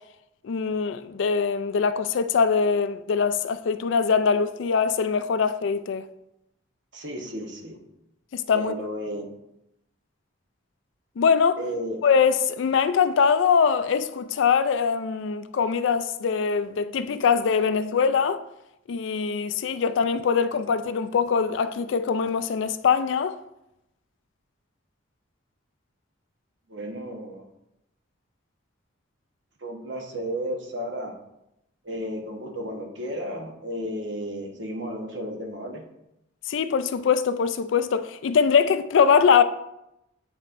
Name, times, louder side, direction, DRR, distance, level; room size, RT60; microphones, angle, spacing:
voice 1, 0.4-6.1 8.3-8.7 11.2-11.6 12.0-18.4 18.9-23.4 36.5-39.4, left 6 dB, 70° left, 0.3 m, -22 dB
voice 2, 6.9-7.8 8.5-9.3 11.6-12.0 26.7-27.5 29.6-31.1 31.8-35.8, equal, 60° right, 1.1 m, -33 dB
8.9 x 4.3 x 2.5 m
head